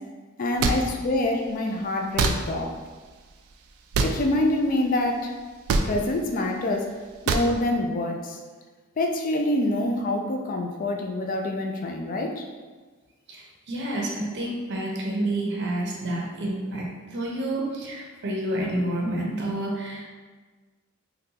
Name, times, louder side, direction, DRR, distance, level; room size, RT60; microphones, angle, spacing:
voice 1, 0.4-2.7 4.0-5.3 5.8-6.9 7.3-8.4 9.0-12.4, left 1 dB, 40° left, 2 dB, 0.3 m, -26 dB
sound 1, 0.6-0.8 2.2-2.3 3.9-4.1 5.7-5.9 7.3-7.5, right 4 dB, 85° right, 0.3 m, -22 dB
voice 2, 13.3-20.0, right 1 dB, 55° right, -2 dB, 0.6 m, -29 dB
3.8 x 2.2 x 2.8 m, 1.4 s
head